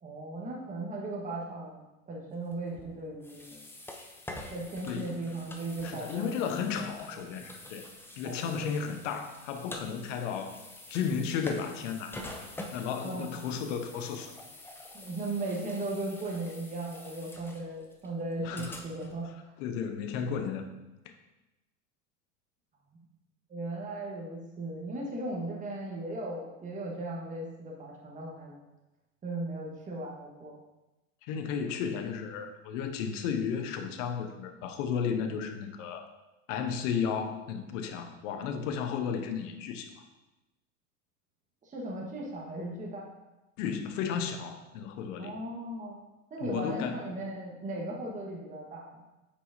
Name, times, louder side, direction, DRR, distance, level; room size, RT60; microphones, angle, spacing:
voice 1, 0.0-3.6 4.5-6.5 6.7-7.2 8.2-8.8 13.0-13.3 14.9-19.3 23.5-28.6 29.2-30.6 41.6-43.1 45.2-46.0 46.3-49.0, right 2 dB, 20° right, -3 dB, 1.3 m, -37 dB
sound 1, 2.5-19.3, left 1 dB, 5° left, 0.6 m, -47 dB
voice 2, 4.8-5.2 5.8-7.9 8.2-10.6 10.9-12.2 12.7-14.3 18.4-18.8 19.6-20.7 21.0-21.1 31.2-36.0 36.5-39.9 43.6-45.4 46.4-47.1, left 7 dB, 60° left, 6 dB, 1.0 m, -33 dB
8.5 x 5.0 x 2.7 m, 1.0 s
hypercardioid pair, 100°, 41 cm